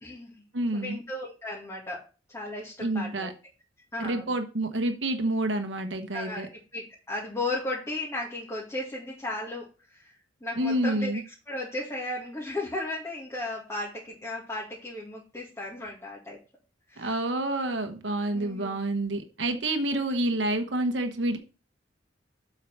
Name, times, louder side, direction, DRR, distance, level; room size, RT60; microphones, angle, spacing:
voice 1, 0.0-0.3 0.7-2.0 2.3-3.3 3.9-4.3 6.1-10.1 10.4-16.4 16.9-17.2 18.3-18.8, left 2 dB, 15° left, -4 dB, 2.1 m, -35 dB
voice 2, 0.5-1.0 2.8-3.3 4.0-6.5 10.6-11.2 17.0-21.4, right 1 dB, 80° right, 6 dB, 1.2 m, -28 dB
7.9 x 4.7 x 5.8 m, 0.32 s
head